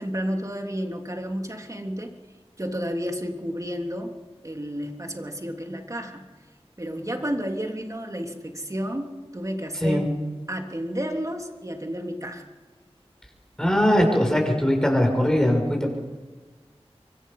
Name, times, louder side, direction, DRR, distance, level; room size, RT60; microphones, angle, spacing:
voice 1, 0.0-2.1 2.6-4.2 4.4-6.3 6.8-10.0 10.5-12.5, equal, 30° right, 3 dB, 3.1 m, -31 dB
voice 2, 13.6-15.9, equal, 5° left, 1 dB, 6.6 m, -21 dB
26.5 x 23.5 x 5.6 m, 1.3 s
wide cardioid pair, 50°, 11 cm